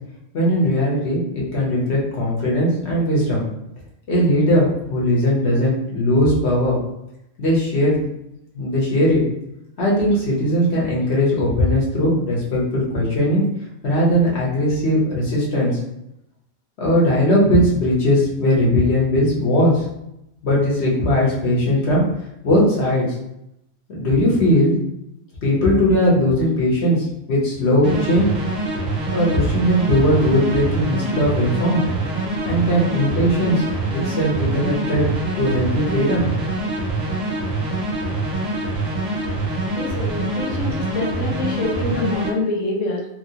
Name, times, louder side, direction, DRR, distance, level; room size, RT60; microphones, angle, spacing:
voice 1, 0.3-3.5 4.1-6.8 7.4-7.9 8.5-9.2 9.8-13.4 13.8-15.8 16.8-19.9 20.4-22.0 22.4-23.1 23.9-24.8 25.4-28.3 29.1-31.9 32.4-33.6 33.9-35.0 35.4-36.3, equal, 60° left, -5 dB, 1.3 m, -19 dB
sound 1, 27.8-42.3, right 2 dB, 45° right, 0.6 m, -25 dB
voice 2, 39.7-43.1, left 3 dB, 85° left, -1 dB, 1.1 m, -25 dB
3.0 x 2.8 x 2.8 m, 0.84 s
omnidirectional pair, 1.3 m